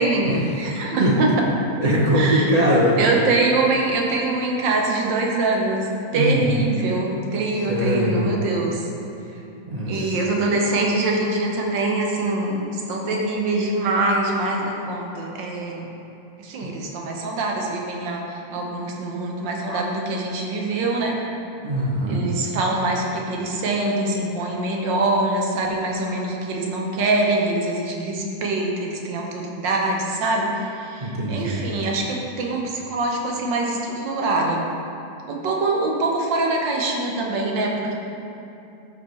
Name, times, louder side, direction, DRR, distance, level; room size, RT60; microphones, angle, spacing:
voice 1, 0.0-1.3 2.2-2.5 3.0-8.9 9.9-15.9 16.4-21.2 22.0-34.6 35.3-37.9, right 2 dB, 75° right, 0 dB, 1.6 m, -24 dB
voice 2, 1.0-1.4 1.8-3.0 6.1-6.6 7.7-8.2 9.7-10.2 16.6-16.7 18.5-18.6 19.7-19.8 21.6-22.3 31.0-31.6, equal, 40° right, -4 dB, 0.5 m, -21 dB
13.0 x 4.5 x 3.2 m, 2.8 s
omnidirectional pair, 2.0 m